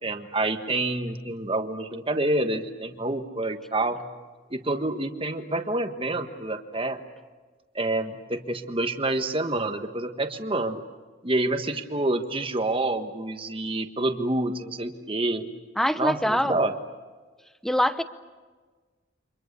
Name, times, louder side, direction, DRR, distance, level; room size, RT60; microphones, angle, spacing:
voice 1, 0.0-4.0 4.5-7.0 7.7-10.8 11.2-15.5 16.0-16.7, right 2 dB, 30° right, 6 dB, 1.5 m, -28 dB
voice 2, 15.8-16.6 17.6-18.0, equal, ahead, 12 dB, 0.8 m, -23 dB
29.0 x 25.5 x 6.9 m, 1.3 s
head